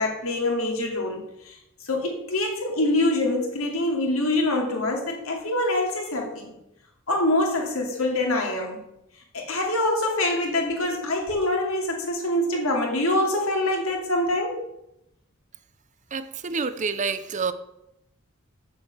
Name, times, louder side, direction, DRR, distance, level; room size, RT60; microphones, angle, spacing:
voice 1, 0.0-1.6 1.8-6.5 7.1-8.8 9.3-14.6, left 1 dB, 75° left, 1 dB, 2.5 m, -25 dB
voice 2, 16.1-17.5, right 5 dB, 35° right, 13 dB, 0.6 m, -28 dB
7.5 x 7.0 x 7.0 m, 0.84 s
head